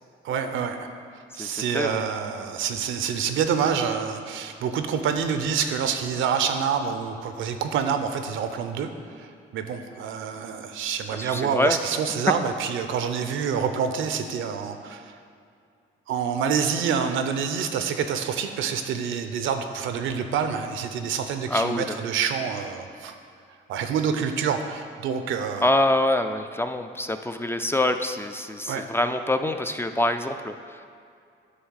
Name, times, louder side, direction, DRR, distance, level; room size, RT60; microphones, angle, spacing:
voice 1, 0.2-0.9 1.3-8.9 9.1-9.3 9.5-15.2 16.1-23.1 23.7-25.7 28.7-28.8, right 7 dB, 80° right, 7 dB, 0.6 m, -27 dB
voice 2, 1.4-2.0 11.1-11.8 21.5-22.0 25.6-30.9, left 1 dB, 10° left, 7 dB, 0.3 m, -25 dB
9.5 x 3.3 x 6.3 m, 2.4 s
cardioid pair, 90°, 20 cm